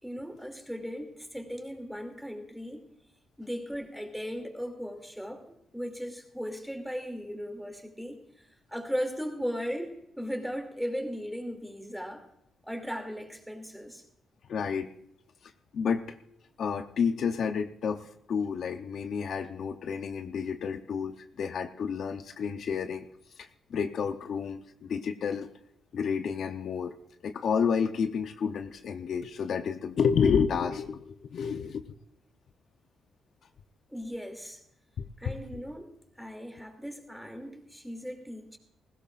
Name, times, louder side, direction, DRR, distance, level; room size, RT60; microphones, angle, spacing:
voice 1, 0.0-2.8 3.4-8.2 8.7-12.2 12.6-14.0 33.9-34.6 35.2-38.6, equal, ahead, 4 dB, 2.7 m, -37 dB
voice 2, 14.5-14.9 15.4-16.2 16.6-23.1 23.4-25.5 25.9-26.9 27.2-31.8 35.0-35.3, left 6 dB, 65° left, 7 dB, 0.8 m, -30 dB
20.0 x 16.5 x 2.5 m, 0.78 s
cardioid pair, 105°, 0 cm